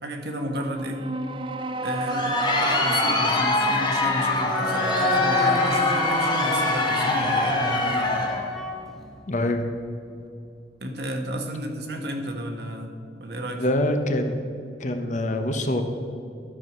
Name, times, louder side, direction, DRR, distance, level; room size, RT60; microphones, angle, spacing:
voice 1, 0.0-1.1 1.8-8.1 10.8-13.6, equal, 65° right, 3 dB, 1.2 m, -32 dB
sound 1, 0.5-9.9, right 3 dB, 30° right, 0.4 m, -33 dB
Crowd, 1.9-8.5, left 2 dB, 25° left, 1.1 m, -24 dB
Wind instrument woodwind instrument, 4.5-8.8, left 2 dB, ahead, 0.7 m, -30 dB
voice 2, 9.3-9.6 13.5-14.4 14.8-15.8, left 1 dB, 45° left, 6 dB, 0.8 m, -25 dB
12.0 x 4.8 x 6.0 m, 2.5 s
head